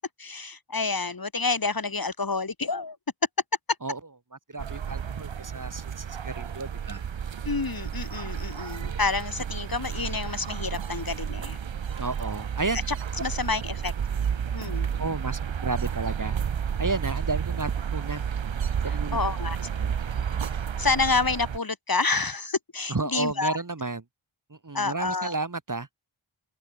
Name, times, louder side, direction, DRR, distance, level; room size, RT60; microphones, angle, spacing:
voice 1, 0.2-3.0 7.4-11.6 12.9-13.0 13.2-13.9 14.5-14.9 19.1-19.6 20.8-23.6 24.7-25.3, left 4 dB, 45° left, 1.5 m, -28 dB
voice 2, 4.5-7.0 12.0-12.8 15.0-16.4 16.8-18.2 18.8-19.2 19.8-19.9 22.9-24.0 24.5-25.9, right 3 dB, 40° right, 2.0 m, -32 dB
sound 1, 4.6-21.6, right 7 dB, 70° right, 0.9 m, -31 dB
open air
wide cardioid pair, 40°, 48 cm